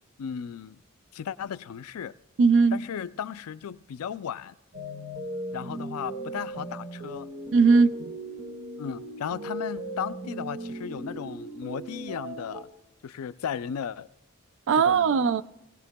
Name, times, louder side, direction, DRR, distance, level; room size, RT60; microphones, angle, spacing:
voice 1, 0.2-0.8 1.1-2.2 2.7-4.5 5.5-7.3 8.8-12.7 13.0-14.1 14.7-15.2, left 7 dB, 90° left, 0.4 m, -35 dB
voice 2, 2.4-2.8 7.5-8.1 14.7-15.4, right 5 dB, 60° right, 0.4 m, -19 dB
sound 1, 4.7-12.6, right 1 dB, 40° right, 1.7 m, -37 dB
18.5 x 18.0 x 2.2 m
head